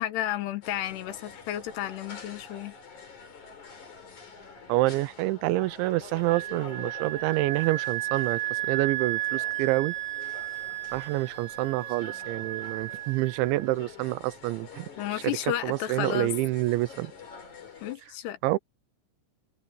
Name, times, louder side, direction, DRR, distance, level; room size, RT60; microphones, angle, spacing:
voice 1, 0.0-2.7 15.0-16.3 17.8-18.4, left 12 dB, 75° left, 3.1 m, -32 dB
sound 1, 0.6-18.0, left 5 dB, 40° left, 5.8 m, -47 dB
voice 2, 4.7-10.0 10.9-14.9 15.6-17.1 18.4-18.6, right 18 dB, 90° right, 3.1 m, -27 dB
Wind instrument woodwind instrument, 6.2-13.7, right 15 dB, 70° right, 3.4 m, -34 dB
omnidirectional pair, 5.2 m